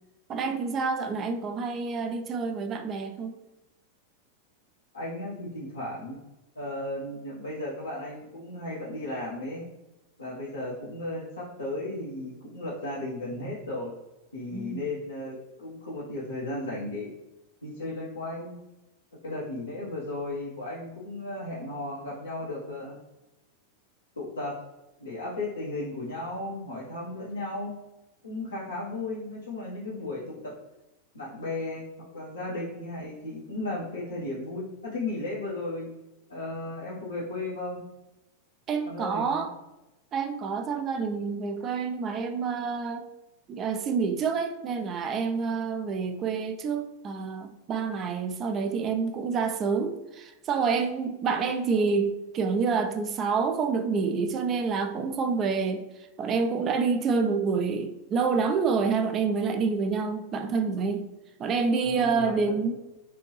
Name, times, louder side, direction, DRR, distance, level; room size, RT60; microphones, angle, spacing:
voice 1, 0.3-3.3 13.4-13.5 14.5-14.8 38.7-39.5 40.1-43.1 43.5-61.0 61.4-62.7, right 5 dB, 30° right, 7 dB, 0.5 m, -28 dB
voice 2, 4.9-6.2 6.5-9.7 10.2-13.9 14.3-17.1 17.6-18.5 19.1-23.0 24.2-24.5 25.0-27.8 28.2-30.5 31.1-31.9 32.1-35.9 36.3-37.9 38.9-39.5 61.8-62.5, left 2 dB, 80° left, -8 dB, 0.9 m, -35 dB
4.6 x 2.6 x 3.1 m, 0.97 s
figure-of-eight pair, 90°, 0 cm